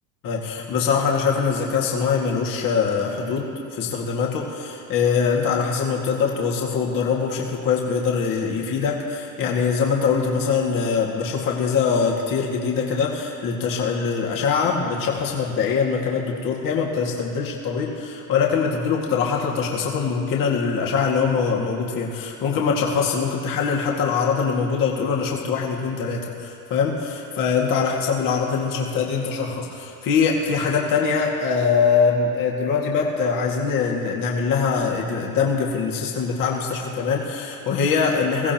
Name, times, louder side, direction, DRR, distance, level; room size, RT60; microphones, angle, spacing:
voice 1, 0.2-38.5, left 5 dB, 50° left, -2 dB, 2.2 m, -23 dB
22.0 x 15.5 x 3.0 m, 2.6 s
supercardioid pair, 100°, 44 cm